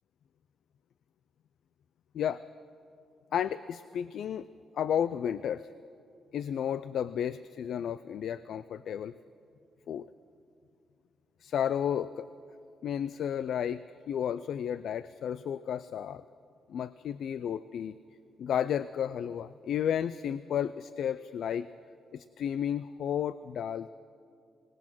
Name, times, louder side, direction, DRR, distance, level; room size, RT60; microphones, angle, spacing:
voice 1, 3.3-4.5 4.7-5.7 6.3-9.1 9.9-10.1 11.4-12.3 12.8-16.2 16.7-17.9 18.4-21.7 22.1-23.9, left 9 dB, 70° left, 15 dB, 0.4 m, -32 dB
25.5 x 19.0 x 6.1 m, 2.5 s
cardioid pair, 130°, 0 cm